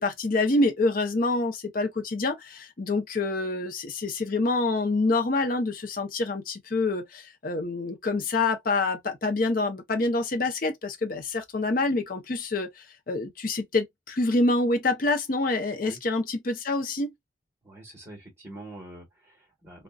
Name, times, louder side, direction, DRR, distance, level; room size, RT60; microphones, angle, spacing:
voice 1, 0.0-17.1, left 2 dB, 45° left, 0.6 m, -26 dB
voice 2, 17.6-19.8, right 1 dB, 15° right, 1.2 m, -45 dB
2.5 x 2.1 x 2.3 m
head